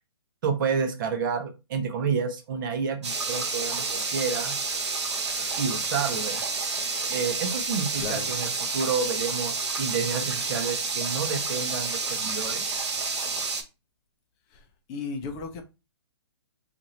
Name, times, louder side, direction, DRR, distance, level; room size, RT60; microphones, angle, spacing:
voice 1, 0.4-4.6 5.6-6.4 7.1-12.8, right 6 dB, 45° right, 0.9 m, -30 dB
sound 1, 3.0-13.6, right 4 dB, 80° right, 1.3 m, -29 dB
voice 2, 14.5-15.6, left 4 dB, 25° left, 0.6 m, -35 dB
2.7 x 2.6 x 4.2 m
hypercardioid pair, 140°, 14 cm